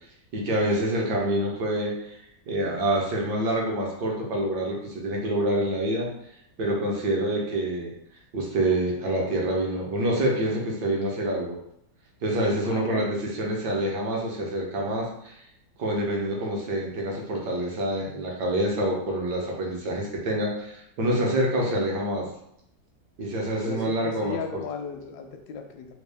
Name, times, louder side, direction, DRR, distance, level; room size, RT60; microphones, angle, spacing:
voice 1, 0.3-2.2 2.5-6.1 6.6-7.9 8.3-11.6 12.2-15.4 15.8-22.3 23.2-24.4, right 1 dB, 65° right, -2 dB, 1.4 m, -26 dB
voice 2, 12.6-13.1 23.6-25.9, left 5 dB, 75° left, 4 dB, 0.9 m, -35 dB
3.6 x 2.3 x 3.4 m, 0.76 s
omnidirectional pair, 2.1 m